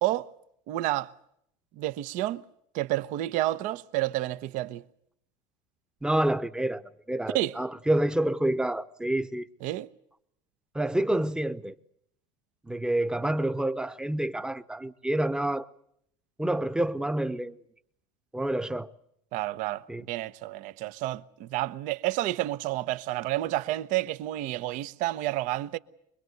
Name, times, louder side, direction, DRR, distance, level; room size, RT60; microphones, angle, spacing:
voice 1, 0.7-1.1 1.8-2.4 2.7-4.8 7.3-7.5 9.6-9.9 19.3-25.8, right 16 dB, 60° right, 1.0 m, -30 dB
voice 2, 6.0-6.8 7.1-9.5 10.7-11.7 12.6-15.7 16.4-17.6 18.3-18.9 19.9-20.0, right 1 dB, 5° right, 0.9 m, -28 dB
25.0 x 21.5 x 8.0 m
supercardioid pair, 125°, 15 cm